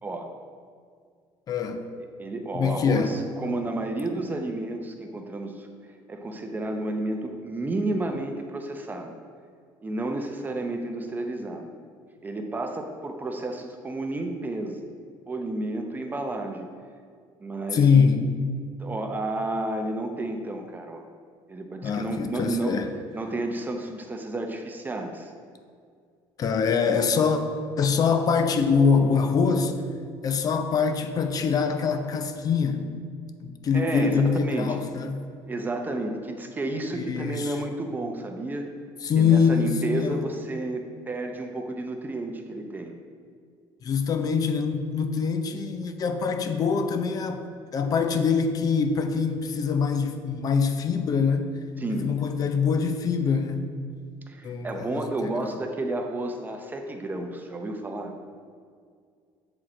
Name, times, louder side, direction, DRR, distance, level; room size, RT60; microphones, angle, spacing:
voice 1, 1.5-1.9 2.5-3.1 17.7-18.3 21.8-22.9 26.4-27.4 27.8-29.8 30.2-32.9 33.4-35.2 36.9-37.6 39.0-40.2 43.8-47.5 47.7-51.5 51.9-53.7 54.4-55.6, left 5 dB, 40° left, 7 dB, 0.5 m, -24 dB
voice 2, 2.2-5.7 6.1-9.2 9.8-11.7 12.2-14.9 15.3-16.7 17.4-18.0 18.8-21.1 21.5-22.8 23.1-25.3 33.7-34.8 35.5-38.7 39.2-42.9 51.8-52.1 54.3-58.1, right 2 dB, 20° right, 4 dB, 0.6 m, -31 dB
7.7 x 4.8 x 4.3 m, 2.1 s
cardioid pair, 130°, 10 cm